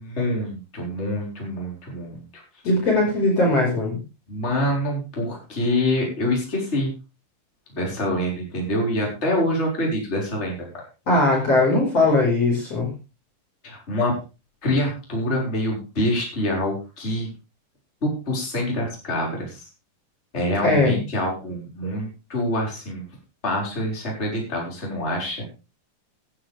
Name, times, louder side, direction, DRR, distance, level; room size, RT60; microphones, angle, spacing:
voice 1, 0.0-2.4 4.3-6.9 7.7-10.7 13.6-14.2 14.6-17.3 18.0-19.6 20.3-23.0 23.4-25.4, left 1 dB, 15° left, -2 dB, 5.8 m, -26 dB
voice 2, 2.6-4.0 11.1-12.9 20.6-21.0, left 2 dB, 35° left, -1 dB, 6.1 m, -19 dB
16.0 x 13.0 x 3.6 m, 0.31 s
omnidirectional pair, 5.4 m